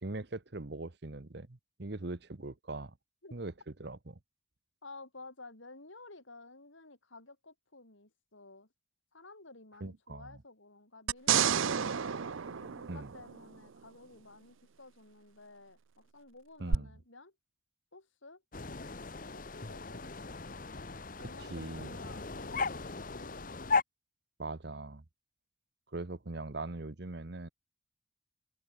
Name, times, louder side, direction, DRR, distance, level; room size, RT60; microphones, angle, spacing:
voice 1, 0.0-2.9 3.3-3.5 3.8-4.2 9.8-10.3 12.9-13.1 16.6-16.9 21.5-21.9 24.4-25.0 25.9-27.5, right 2 dB, 55° right, 1.1 m, -41 dB
voice 2, 4.8-8.7 9.1-12.0 12.4-17.3 17.9-18.4 19.3-20.2 21.2-23.5, left 3 dB, 75° left, 4.4 m, -53 dB
sound 1, 11.1-13.6 16.7-16.8, right 7 dB, 80° right, 0.7 m, -30 dB
sound 2, 18.5-23.8, left 4 dB, 45° left, 1.1 m, -36 dB
open air
head